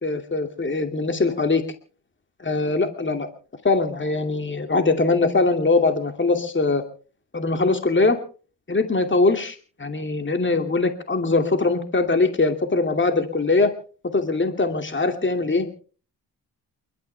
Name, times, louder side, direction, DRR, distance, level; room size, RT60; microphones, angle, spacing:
voice 1, 0.0-1.6 2.4-3.3 3.6-6.8 7.3-8.2 8.7-13.7 14.1-15.7, left 3 dB, 25° left, 6 dB, 2.6 m, -22 dB
28.5 x 13.0 x 3.4 m, 0.40 s
supercardioid pair, 50°, 44 cm